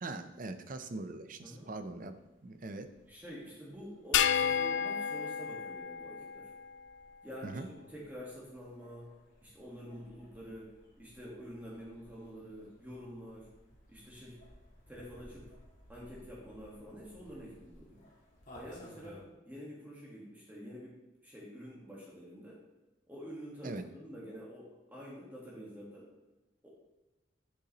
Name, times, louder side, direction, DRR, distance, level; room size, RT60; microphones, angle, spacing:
voice 1, 0.0-2.1 2.4-2.9 7.4-7.7 23.6-23.8, right 2 dB, 45° right, 9 dB, 0.5 m, -41 dB
voice 2, 1.4-1.7 3.1-6.5 7.2-9.1 9.4-13.5 13.9-14.4 14.9-15.5 15.9-18.0 18.5-21.0 21.2-22.6 23.1-26.1 26.6-26.8, equal, 10° right, -5 dB, 1.4 m, -48 dB
sound 1, 1.9-19.2, equal, 45° left, 1.6 m, -60 dB
sound 2, 4.1-6.7, left 8 dB, 65° left, 0.3 m, -31 dB
7.7 x 6.8 x 2.9 m, 1.0 s
head